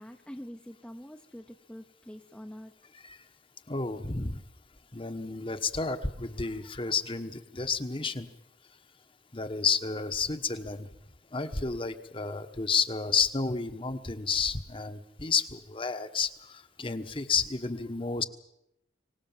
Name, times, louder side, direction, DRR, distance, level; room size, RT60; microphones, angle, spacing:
voice 1, 0.0-2.7, equal, 5° left, 4 dB, 0.9 m, -45 dB
voice 2, 3.7-4.4 4.9-8.3 9.3-10.9 11.3-18.2, left 5 dB, 30° left, 9 dB, 1.3 m, -31 dB
24.5 x 19.0 x 7.4 m, 0.81 s
head